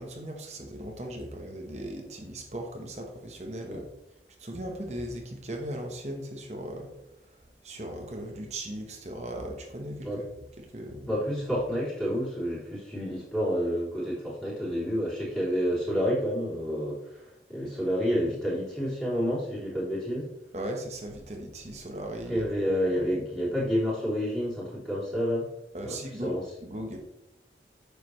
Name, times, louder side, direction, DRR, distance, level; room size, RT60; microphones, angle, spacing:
voice 1, 0.0-3.9 4.4-10.1 10.6-11.1 20.5-23.1 25.7-27.0, right 1 dB, 40° right, 2 dB, 1.3 m, -38 dB
voice 2, 11.1-20.3 22.3-25.5 25.8-26.4, equal, 5° left, -7 dB, 3.5 m, -29 dB
9.6 x 6.9 x 3.3 m, 0.86 s
head